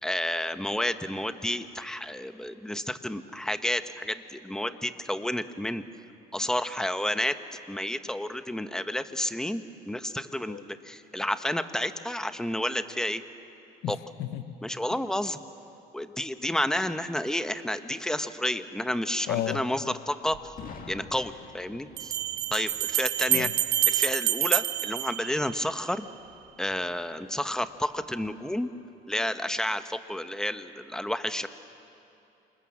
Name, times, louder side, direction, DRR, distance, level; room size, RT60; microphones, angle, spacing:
voice 1, 0.0-5.8 6.3-7.4 7.7-13.2 13.9-14.0 14.6-15.4 15.9-20.5 20.9-22.1 22.5-23.5 23.9-26.0 26.6-28.7 29.1-31.5, left 1 dB, 5° left, 10 dB, 1.1 m, -30 dB
voice 2, 13.8-14.5 19.3-19.6 23.3-23.5, left 12 dB, 80° left, 11 dB, 1.2 m, -32 dB
Bell, 20.3-20.4 22.0-25.9, right 12 dB, 70° right, 1.1 m, -27 dB
Boom, 20.6-24.4, left 5 dB, 55° left, 2.3 m, -48 dB
28.0 x 26.5 x 7.3 m, 2.9 s
cardioid pair, 110°, 17 cm